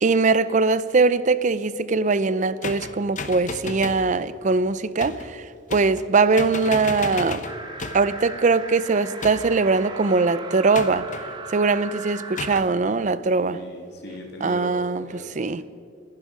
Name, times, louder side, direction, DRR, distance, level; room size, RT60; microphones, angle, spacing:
voice 1, 0.0-5.4 5.7-7.4 7.9-11.1 11.5-13.6 14.4-15.6, right 4 dB, 40° right, 0.5 m, -21 dB
sound 1, 2.6-4.1 5.0-5.3 5.7-6.1 6.4-8.2 9.2-9.7 10.7-11.3 12.4-12.7, left 4 dB, 40° left, 0.8 m, -34 dB
sound 2, 7.4-12.6, right 3 dB, 25° right, 1.3 m, -38 dB
voice 2, 13.5-15.6, left 1 dB, 60° left, 2.6 m, -39 dB
27.0 x 10.5 x 5.0 m
head